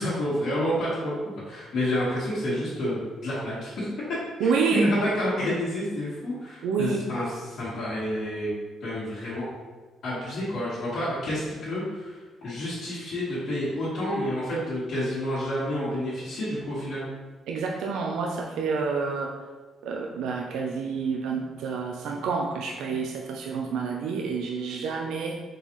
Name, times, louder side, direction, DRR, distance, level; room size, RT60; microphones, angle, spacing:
voice 1, 0.0-3.9 4.4-8.5 8.8-9.4 10.0-17.1, left 1 dB, 70° left, -11 dB, 1.5 m, -29 dB
voice 2, 4.4-4.9 6.6-7.0 17.5-19.3 19.8-25.4, right 5 dB, 85° right, 1 dB, 0.4 m, -28 dB
4.0 x 3.8 x 3.0 m, 1.3 s
cardioid pair, 90°, 0 cm